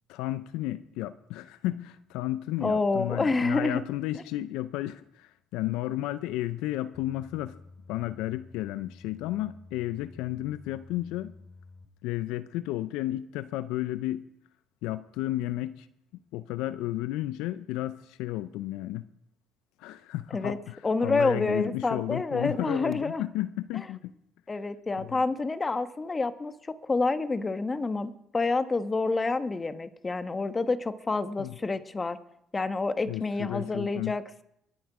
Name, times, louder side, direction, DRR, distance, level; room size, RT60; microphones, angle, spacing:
voice 1, 0.1-7.6 7.9-11.3 12.0-14.2 14.8-15.9 16.3-19.1 19.8-24.1 25.0-25.2 31.4-31.6 33.1-34.2, left 15 dB, 80° left, 14 dB, 0.5 m, -33 dB
voice 2, 2.6-3.8 20.3-20.6 20.8-23.2 24.5-26.5 26.8-32.2 32.5-34.4, left 3 dB, 25° left, 11 dB, 1.1 m, -28 dB
sound 1, 6.9-11.9, left 3 dB, ahead, 3.5 m, -51 dB
22.5 x 7.9 x 4.9 m, 0.79 s
supercardioid pair, 70°, 0 cm